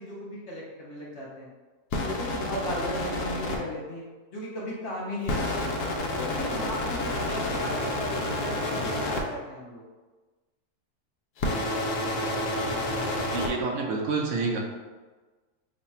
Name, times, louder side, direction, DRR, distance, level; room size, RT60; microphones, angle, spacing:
voice 1, 0.0-1.5 2.0-4.0 4.3-5.8 6.2-9.9, left 1 dB, 60° left, -5 dB, 0.8 m, -36 dB
sound 1, 1.9-3.6 5.3-9.2 11.4-13.5, left 1 dB, 80° left, 1.1 m, -29 dB
voice 2, 13.3-14.6, right 4 dB, 65° right, 0 dB, 0.8 m, -28 dB
3.1 x 2.2 x 4.0 m, 1.3 s
omnidirectional pair, 1.6 m